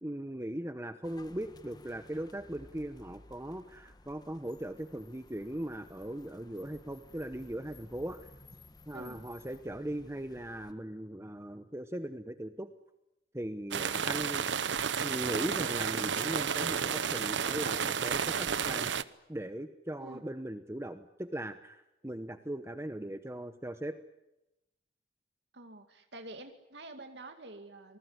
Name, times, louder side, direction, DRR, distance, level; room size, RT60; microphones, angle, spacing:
voice 1, 0.0-8.3 8.9-12.7 13.3-14.5 15.0-18.9 19.3-24.0, right 1 dB, 15° right, 9 dB, 1.0 m, -39 dB
sound 1, 1.0-10.7, left 2 dB, 20° left, 1.3 m, -56 dB
voice 2, 8.9-9.3 20.0-20.2 25.5-28.0, right 2 dB, 70° right, 6 dB, 2.2 m, -48 dB
sound 2, 13.7-19.0, right 7 dB, 90° right, 0.9 m, -32 dB
27.5 x 20.5 x 9.7 m, 0.93 s
head